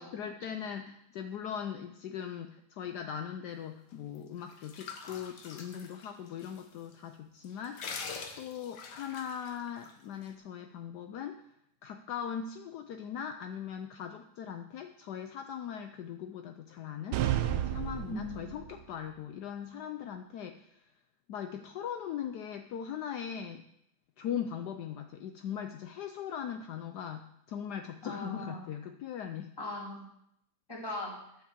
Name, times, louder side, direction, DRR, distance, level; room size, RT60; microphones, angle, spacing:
voice 1, 0.1-8.0 8.4-11.4 11.8-20.9 21.3-23.6 24.2-29.5, left 8 dB, 75° left, 7 dB, 0.9 m, -40 dB
sound 1, 4.1-6.6 6.9-7.0 7.4-9.9, left 5 dB, 55° left, 1.5 m, -44 dB
sound 2, 17.1-18.8, right 12 dB, 80° right, 1.5 m, -31 dB
voice 2, 18.1-18.5 28.0-28.7 29.6-30.1 30.7-31.2, left 2 dB, 10° left, -2 dB, 2.4 m, -39 dB
9.4 x 7.4 x 7.3 m, 0.75 s
omnidirectional pair, 2.4 m